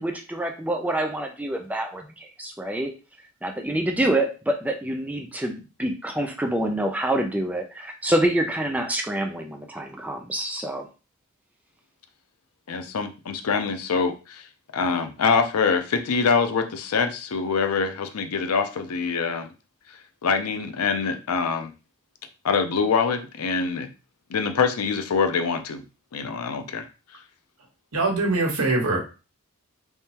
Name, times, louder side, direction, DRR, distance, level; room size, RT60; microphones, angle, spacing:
voice 1, 0.0-2.9 3.4-10.9, right 1 dB, 5° right, 3 dB, 0.4 m, -26 dB
voice 2, 12.7-14.4 14.7-19.5 20.2-21.7 22.4-23.9 24.3-25.8 26.1-26.9, left 5 dB, 90° left, 8 dB, 0.5 m, -24 dB
voice 3, 27.9-29.1, right 2 dB, 90° right, 0 dB, 1.2 m, -23 dB
3.5 x 3.2 x 2.8 m, 0.31 s
head